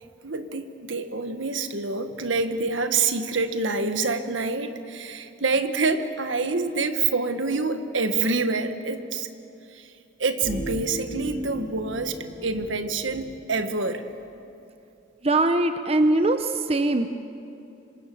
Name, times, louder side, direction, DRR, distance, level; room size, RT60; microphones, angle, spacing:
voice 1, 0.2-9.3 9.7-9.9 10.2-12.2 12.4-14.0, right 4 dB, 80° right, 8 dB, 1.5 m, -26 dB
sound 1, 10.4-13.3, right 1 dB, 75° left, 5.7 m, -36 dB
voice 2, 15.2-17.1, right 2 dB, 30° right, 8 dB, 0.8 m, -21 dB
26.5 x 25.5 x 7.1 m, 2.7 s
head